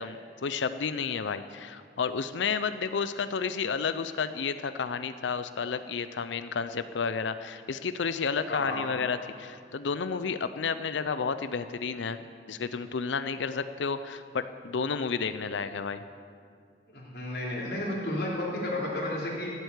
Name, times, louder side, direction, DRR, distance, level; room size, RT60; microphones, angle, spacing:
voice 1, 0.0-16.0, left 5 dB, 90° left, 12 dB, 0.5 m, -31 dB
voice 2, 8.5-8.9 16.9-19.5, left 1 dB, 60° left, -4 dB, 3.7 m, -32 dB
15.0 x 8.1 x 8.2 m, 2.2 s
head